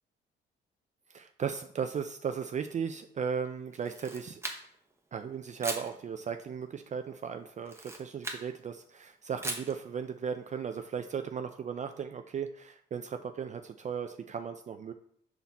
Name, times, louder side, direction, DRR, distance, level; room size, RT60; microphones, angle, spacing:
voice 1, 1.1-4.4 5.1-14.9, right 7 dB, 40° right, 7 dB, 0.4 m, -36 dB
Camera, 3.7-4.9 5.6-5.9 7.6-8.5 9.4-9.8, right 2 dB, 15° right, 1.0 m, -38 dB
5.8 x 4.1 x 4.1 m, 0.65 s
cardioid pair, 90°, 20 cm